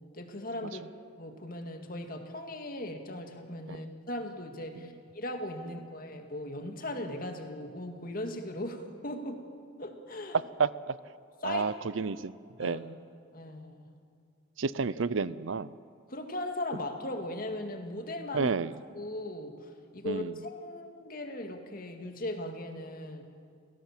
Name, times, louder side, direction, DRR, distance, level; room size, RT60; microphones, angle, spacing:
voice 1, 0.1-0.8 1.2-9.4 9.8-10.4 11.4-11.6 12.6-12.8 13.3-13.9 16.1-18.5 18.9-23.2, left 1 dB, 45° left, 5 dB, 2.2 m, -38 dB
voice 2, 10.6-10.9 11.4-12.3 12.6-12.9 14.6-15.7 18.3-18.7 20.1-20.3, right 5 dB, 85° right, 18 dB, 0.6 m, -31 dB
30.0 x 16.5 x 7.5 m, 2.2 s
head